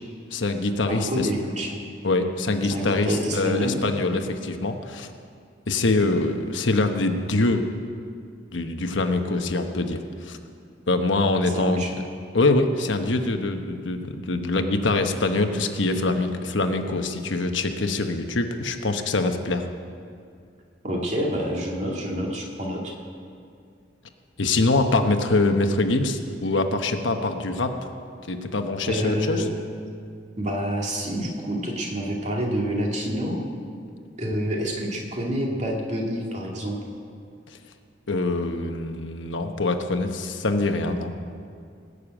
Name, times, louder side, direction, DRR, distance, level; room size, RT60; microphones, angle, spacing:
voice 1, 0.3-1.3 2.0-5.1 5.7-7.7 8.5-10.4 10.9-11.9 12.3-19.7 24.4-27.7 28.3-29.4 38.1-41.1, left 2 dB, 85° left, 6 dB, 1.1 m, -24 dB
voice 2, 0.9-1.8 2.7-3.8 11.5-11.9 20.8-22.9 28.9-29.5 30.4-33.4 34.2-36.8, equal, 40° right, -2 dB, 2.3 m, -27 dB
19.5 x 6.7 x 8.9 m, 2.3 s
head